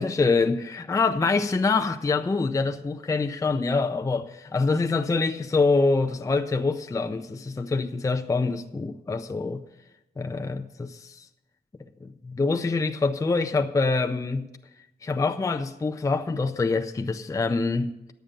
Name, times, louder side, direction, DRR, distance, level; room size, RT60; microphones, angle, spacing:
voice 1, 0.0-9.6 10.2-11.3 12.0-14.5 15.0-18.1, left 3 dB, 20° left, 0.4 m, -25 dB
10.0 x 8.7 x 6.6 m
wide cardioid pair, 175°, 18 cm